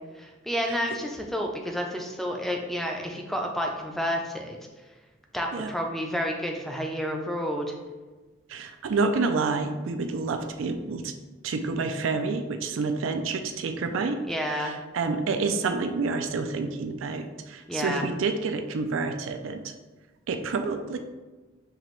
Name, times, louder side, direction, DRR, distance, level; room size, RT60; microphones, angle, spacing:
voice 1, 0.1-4.6 5.3-7.7 14.3-14.7 17.7-18.1, equal, ahead, 1 dB, 0.4 m, -30 dB
voice 2, 8.5-11.1 11.4-19.7 20.3-21.0, right 4 dB, 85° right, 7 dB, 0.4 m, -29 dB
5.8 x 2.9 x 3.1 m, 1.2 s
head